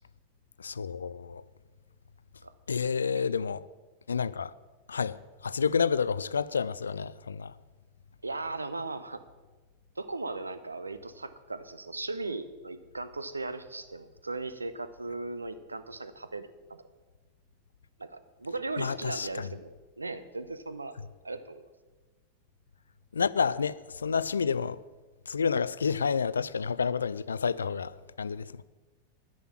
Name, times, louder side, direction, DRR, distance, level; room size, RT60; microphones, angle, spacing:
voice 1, 0.6-1.4 2.7-3.6 4.1-4.5 4.9-5.2 5.4-7.5 18.8-19.5 23.1-24.8 25.3-28.6, left 6 dB, 70° left, 0.4 m, -29 dB
voice 2, 8.2-9.2 10.0-16.8 18.0-21.0 21.2-21.7, right 3 dB, 80° right, 0.7 m, -37 dB
10.5 x 10.0 x 5.9 m
figure-of-eight pair, 90°, 0 cm